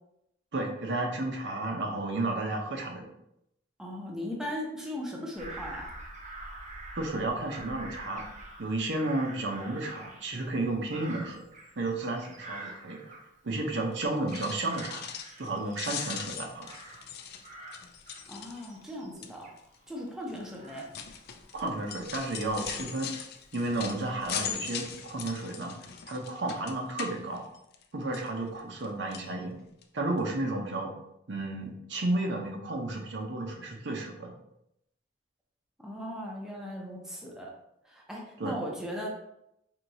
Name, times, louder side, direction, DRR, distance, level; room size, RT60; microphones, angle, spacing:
voice 1, 0.5-3.1 7.0-8.2 8.6-11.4 11.8-13.1 13.4-15.1 15.4-16.7 21.5-23.1 23.5-25.7 26.1-27.4 27.9-29.6 29.9-30.9 31.3-34.3 38.4-38.6, right 2 dB, 70° right, 1 dB, 0.7 m, -32 dB
voice 2, 3.8-5.9 18.3-19.5 19.9-20.9 35.8-37.5 37.8-39.1, equal, 5° right, -2 dB, 0.6 m, -38 dB
Bird vocalization bird call bird song / Crow, 5.4-13.7 14.0-17.2 17.4-23.4 24.0-24.5, right 2 dB, 45° right, 0.8 m, -47 dB
sound 1, 14.2-15.5 15.7-18.9 19.2-19.6 20.3-27.8 28.1-28.9 29.1-29.3 29.8-29.9 30.2-30.3, left 8 dB, 60° left, 0.4 m, -40 dB
4.5 x 2.8 x 2.7 m, 0.79 s
head